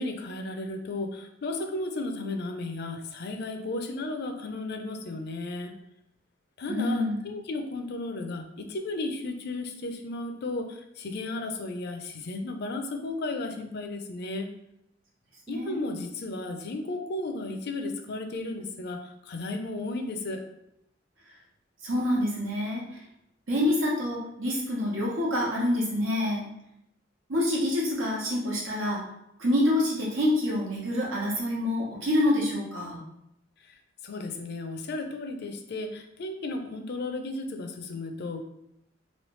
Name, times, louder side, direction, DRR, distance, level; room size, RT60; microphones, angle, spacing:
voice 1, 0.0-5.7 6.6-14.5 15.5-20.4 34.0-38.5, left 2 dB, 55° left, 6 dB, 0.4 m, -34 dB
voice 2, 6.7-7.2 15.5-15.8 21.8-22.8 23.5-26.5 27.3-29.0 29.4-33.0, left 1 dB, 85° right, -4 dB, 1.1 m, -27 dB
3.1 x 2.8 x 3.1 m, 0.80 s
head